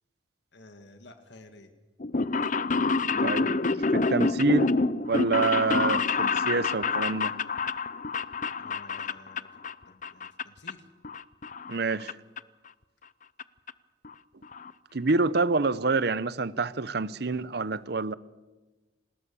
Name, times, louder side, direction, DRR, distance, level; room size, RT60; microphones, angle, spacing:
voice 1, 0.5-1.7 8.6-9.5 9.9-10.9, left 2 dB, 65° left, 1.9 m, -52 dB
sound 1, 2.0-9.7 10.0-10.7 11.0-12.1 12.4-12.5 13.4-13.5 13.7-13.8 14.0-14.1 14.4-14.7 15.1-15.2 15.4-15.5, left 4 dB, 40° left, 0.6 m, -27 dB
voice 2, 3.9-4.7 5.0-7.3 11.7-12.2 14.9-18.1, right 3 dB, 60° right, 0.8 m, -27 dB
26.5 x 20.0 x 7.0 m
head